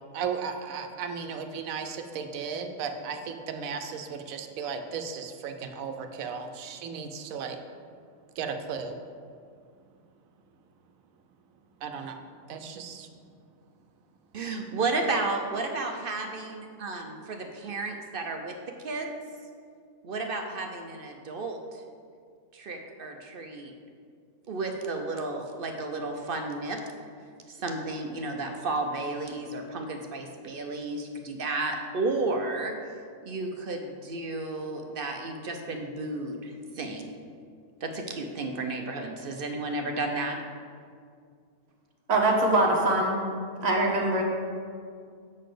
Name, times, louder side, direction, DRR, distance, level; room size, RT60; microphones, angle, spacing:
voice 1, 0.1-7.6 8.4-9.0 11.8-12.2 12.5-13.1, right 6 dB, 90° right, 6 dB, 1.1 m, -35 dB
voice 2, 14.3-19.2 20.0-21.8 22.5-23.7 24.5-26.8 27.5-32.8 33.2-37.1 37.8-40.4, right 3 dB, 55° right, 3 dB, 0.7 m, -32 dB
voice 3, 42.1-43.2 43.6-44.2, right 2 dB, 35° right, -2 dB, 1.2 m, -23 dB
7.4 x 4.0 x 6.6 m, 2.2 s
omnidirectional pair, 1.4 m